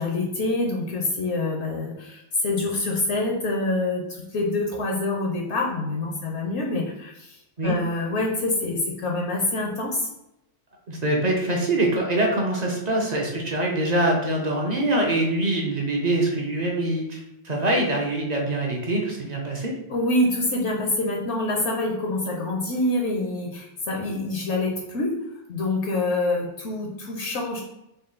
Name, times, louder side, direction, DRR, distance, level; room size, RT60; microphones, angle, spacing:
voice 1, 0.0-10.1 19.9-25.2 25.5-27.7, left 2 dB, 70° left, 0 dB, 0.9 m, -26 dB
voice 2, 10.9-19.7, right 1 dB, 45° right, 0 dB, 0.7 m, -24 dB
3.8 x 2.3 x 3.7 m, 0.87 s
omnidirectional pair, 1.2 m